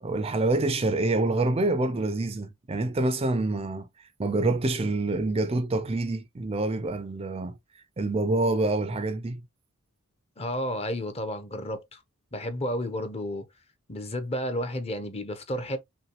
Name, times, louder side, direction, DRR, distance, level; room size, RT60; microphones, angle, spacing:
voice 1, 0.0-3.9 4.2-7.6 8.0-9.4, right 2 dB, 25° right, 0.5 m, -26 dB
voice 2, 10.4-12.0 12.3-13.4 13.9-15.8, equal, 30° left, 0.8 m, -31 dB
5.6 x 2.2 x 3.0 m
head